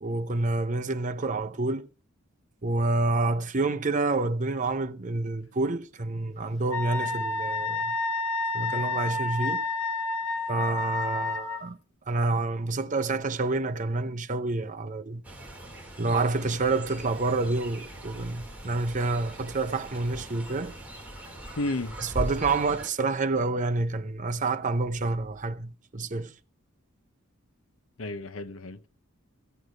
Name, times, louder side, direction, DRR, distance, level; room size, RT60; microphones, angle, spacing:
voice 1, 0.0-1.9 2.6-7.9 8.5-9.6 10.5-11.8 12.1-15.2 16.0-20.7 22.0-26.3, right 3 dB, 35° right, 0.7 m, -28 dB
Wind instrument woodwind instrument, 6.7-11.6, left 2 dB, 85° left, 1.7 m, -30 dB
Fowl, 15.2-22.9, right 1 dB, 5° right, 3.0 m, -40 dB
voice 2, 21.6-22.0 28.0-28.9, left 2 dB, 70° left, 0.9 m, -32 dB
15.0 x 8.2 x 5.1 m
head